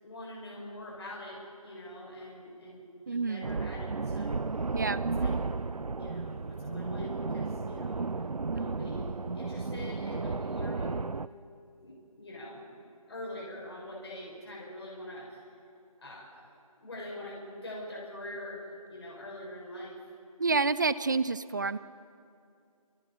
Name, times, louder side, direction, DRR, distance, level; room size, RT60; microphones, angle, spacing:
voice 1, 0.0-4.4 5.2-5.3 5.9-8.3 8.5-11.1 11.8-12.7 13.1-15.4 16.0-20.0, left 1 dB, 45° left, -4 dB, 6.8 m, -44 dB
voice 2, 3.1-3.5 4.7-5.0 20.4-21.8, right 4 dB, 30° right, 16 dB, 0.6 m, -28 dB
sound 1, 3.4-11.3, right 4 dB, 90° right, 0.7 m, -33 dB
29.5 x 29.0 x 4.4 m, 2.4 s
figure-of-eight pair, 165°, 19 cm